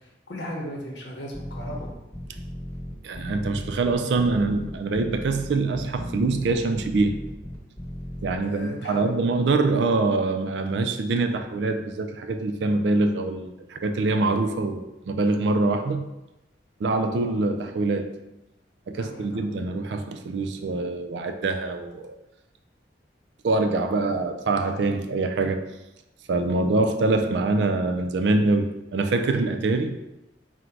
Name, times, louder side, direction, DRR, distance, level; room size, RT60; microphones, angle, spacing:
voice 1, 0.0-1.9 8.4-9.1 19.0-19.5, left 1 dB, 80° left, -1 dB, 0.8 m, -36 dB
sound 1, 1.3-8.3, equal, 15° left, 0.9 m, -36 dB
voice 2, 3.0-7.2 8.2-16.0 16.8-18.2 18.9-22.1 23.4-25.7 26.3-30.0, right 3 dB, 75° right, 6 dB, 0.4 m, -24 dB
3.8 x 2.2 x 4.5 m, 0.96 s
head